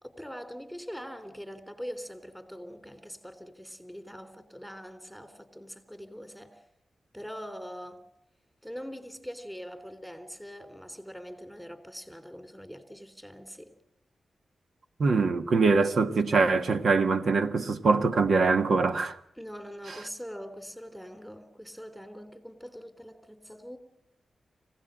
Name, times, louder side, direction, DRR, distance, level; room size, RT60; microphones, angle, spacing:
voice 1, 0.0-6.6 7.1-8.0 8.6-13.7 19.4-23.8, equal, 5° right, 3.5 m, -43 dB
voice 2, 15.0-19.2, right 4 dB, 70° right, 1.5 m, -23 dB
26.0 x 17.0 x 9.0 m
cardioid pair, 80°, 0 cm